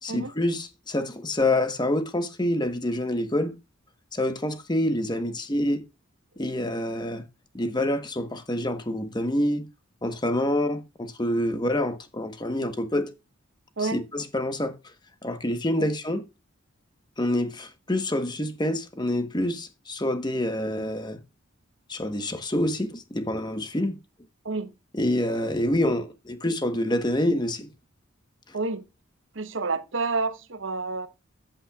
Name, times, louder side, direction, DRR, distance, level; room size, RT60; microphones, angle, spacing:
voice 1, 0.0-3.5 4.1-5.8 6.4-7.2 7.5-9.7 10.0-13.1 13.8-14.7 15.2-16.2 17.2-21.2 21.9-24.0 24.9-27.7, left 1 dB, 20° left, 1.0 m, -27 dB
voice 2, 29.3-31.1, right 3 dB, 60° right, 0.9 m, -29 dB
14.0 x 8.7 x 2.3 m
head